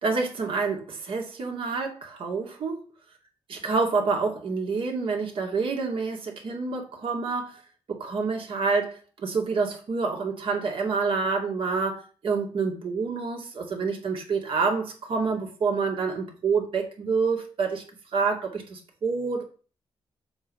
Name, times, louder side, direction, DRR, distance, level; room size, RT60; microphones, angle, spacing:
voice 1, 0.0-2.8 3.6-7.6 7.9-17.8 18.1-19.4, right 4 dB, 65° right, 2 dB, 2.4 m, -27 dB
7.2 x 4.9 x 5.5 m, 0.37 s
wide cardioid pair, 135°, 10 cm